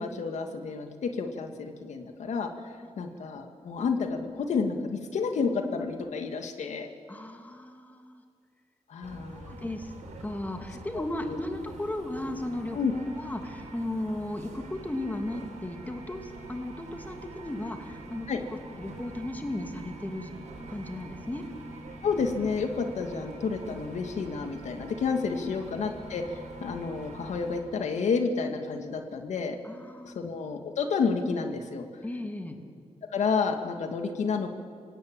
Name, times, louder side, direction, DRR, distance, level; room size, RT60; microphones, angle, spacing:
voice 1, 0.0-2.5 3.0-6.9 8.9-9.6 11.0-11.1 12.7-12.9 18.3-18.4 22.0-29.6 30.0-31.8 33.1-34.5, left 5 dB, 80° left, 5 dB, 2.1 m, -30 dB
voice 2, 7.1-8.2 9.4-9.9 10.2-18.3 18.7-20.3 20.7-21.4 25.2-25.5 29.6-30.3 32.0-32.6, left 1 dB, 15° left, 4 dB, 2.7 m, -36 dB
sound 1, 9.0-27.6, right 2 dB, 85° right, 6.0 m, -45 dB
27.0 x 17.5 x 8.9 m, 2.1 s
cardioid pair, 100°, 12 cm